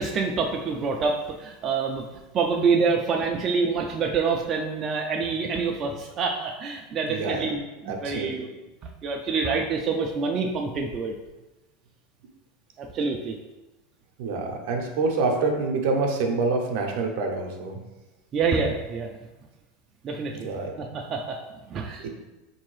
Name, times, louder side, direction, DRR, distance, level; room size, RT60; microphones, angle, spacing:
voice 1, 0.0-2.1 2.3-8.5 9.0-11.2 12.8-13.4 18.3-19.1 20.0-20.5 20.8-21.4 21.7-22.1, right 4 dB, 35° right, 1 dB, 0.3 m, -26 dB
voice 2, 7.1-7.4 7.9-8.4 14.2-17.8 20.3-20.7 22.0-22.1, right 3 dB, 70° right, 2 dB, 0.6 m, -26 dB
3.7 x 2.7 x 3.1 m, 1.1 s
supercardioid pair, 115°, 0 cm